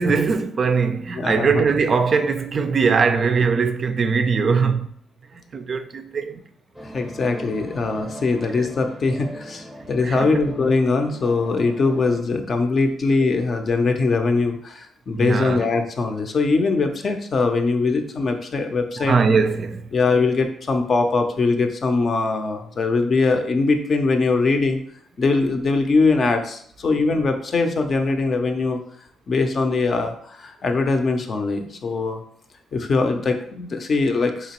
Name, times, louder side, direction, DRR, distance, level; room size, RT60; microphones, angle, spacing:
voice 1, 0.0-4.9 5.5-6.4 8.6-8.7 10.0-10.4 15.1-15.6 19.0-19.9, right 5 dB, 45° right, 0.3 m, -21 dB
voice 2, 1.2-1.6 6.9-19.2 19.9-24.8 25.2-28.8 29.3-32.2 32.7-34.5, left 3 dB, 45° left, 0.5 m, -21 dB
sound 1, 6.7-12.2, equal, ahead, 0.7 m, -39 dB
3.8 x 2.9 x 2.9 m
cardioid pair, 90°, 0 cm